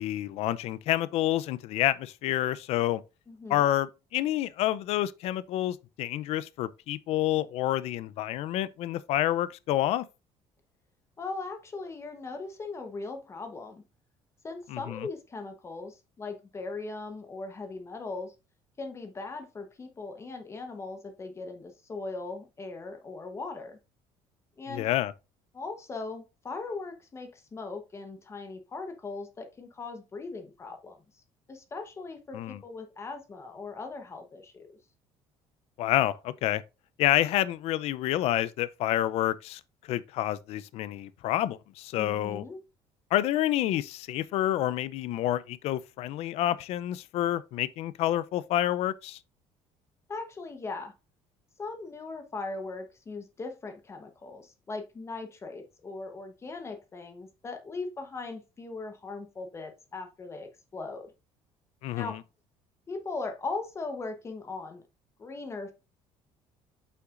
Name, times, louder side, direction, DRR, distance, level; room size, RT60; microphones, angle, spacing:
voice 1, 0.0-3.0 3.5-10.0 14.7-15.1 24.7-25.1 32.3-32.6 35.8-36.6 37.0-39.6 39.9-42.4 43.1-49.2 61.8-62.2, left 13 dB, 65° left, 0.5 m, -28 dB
voice 2, 3.3-3.7 11.2-13.8 14.4-18.3 18.8-23.8 24.6-24.9 25.5-31.0 31.5-34.7 42.0-42.6 50.1-50.9 51.6-61.1 61.9-62.2 62.9-64.8 65.2-65.7, left 3 dB, 25° left, 1.0 m, -39 dB
7.7 x 5.8 x 2.5 m
cardioid pair, 140°, 11 cm